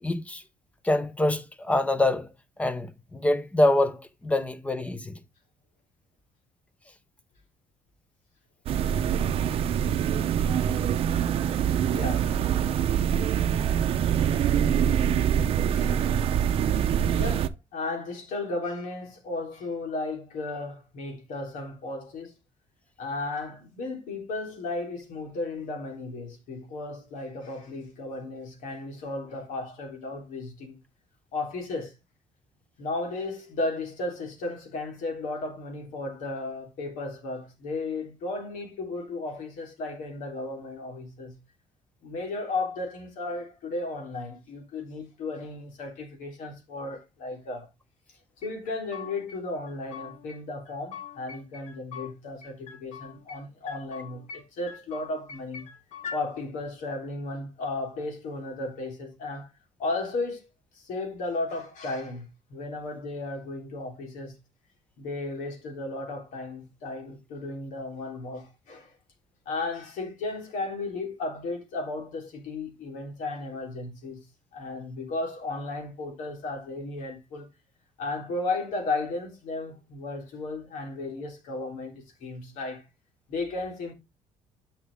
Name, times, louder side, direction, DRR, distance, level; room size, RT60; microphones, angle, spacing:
voice 1, 0.0-0.4 0.8-2.3 2.6-5.2, left 1 dB, 10° left, 0.8 m, -25 dB
sound 1, 8.7-17.5, right 9 dB, 45° right, 0.7 m, -24 dB
voice 2, 11.9-12.4 14.3-14.9 15.7-16.0 17.2-22.3 23.0-30.8 31.3-31.9 32.8-41.4 42.0-47.7 48.4-55.7 56.1-59.5 59.8-60.4 60.7-64.4 65.0-68.9 69.5-74.2 74.5-77.5 78.0-82.8 83.3-83.9, left 2 dB, 75° left, 3.6 m, -34 dB
sound 2, 48.4-49.4 49.7-50.4 50.7-52.1 52.4-53.4 53.7-54.4 54.7-56.2, left 7 dB, 60° left, 2.1 m, -42 dB
10.5 x 5.8 x 3.5 m
cardioid pair, 175°, 13 cm